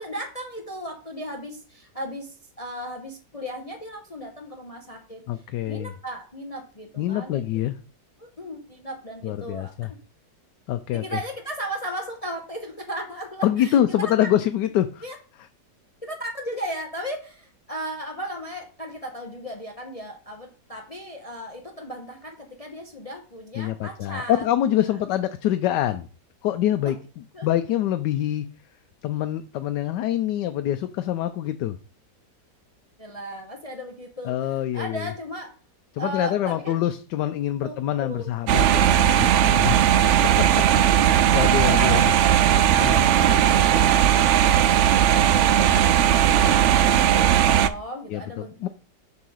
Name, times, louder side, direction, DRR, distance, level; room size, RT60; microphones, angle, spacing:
voice 1, 0.0-5.2 5.7-7.6 8.2-9.7 10.9-13.8 14.2-14.3 15.0-15.2 16.0-24.4 24.8-25.0 27.3-27.5 33.0-35.6 36.0-36.8 37.6-37.7 38.0-38.3 41.6-42.4 42.7-48.7, equal, 25° left, 2 dB, 0.8 m, -36 dB
voice 2, 5.3-5.9 7.0-7.8 9.2-9.9 10.7-11.2 13.4-15.0 23.6-26.1 26.4-27.0 27.4-28.4 29.0-31.8 34.2-35.1 35.9-40.5 40.9-42.0 42.8-43.1 48.1-48.7, left 12 dB, 85° left, 9 dB, 1.2 m, -25 dB
sound 1, 38.5-47.7, right 10 dB, 85° right, 0.6 m, -18 dB
7.1 x 3.8 x 6.2 m, 0.38 s
omnidirectional pair, 1.8 m